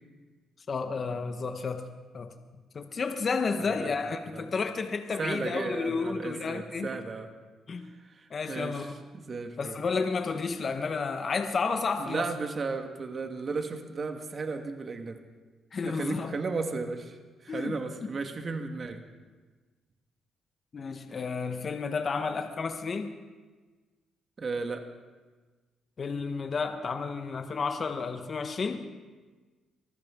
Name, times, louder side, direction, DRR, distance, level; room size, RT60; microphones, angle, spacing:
voice 1, 0.7-1.9 2.1-2.3 2.7-6.9 7.7-7.9 8.3-8.9 9.6-12.3 15.7-16.3 17.5-17.7 20.7-23.1 26.0-28.9, left 4 dB, 45° left, 6 dB, 1.1 m, -31 dB
voice 2, 3.6-3.9 4.3-4.5 5.2-7.3 8.0-9.8 12.0-15.2 15.8-17.2 17.4-19.0 24.4-24.8, right 4 dB, 40° right, 5 dB, 1.6 m, -35 dB
24.0 x 15.0 x 3.7 m, 1.3 s
cardioid pair, 90°, 0 cm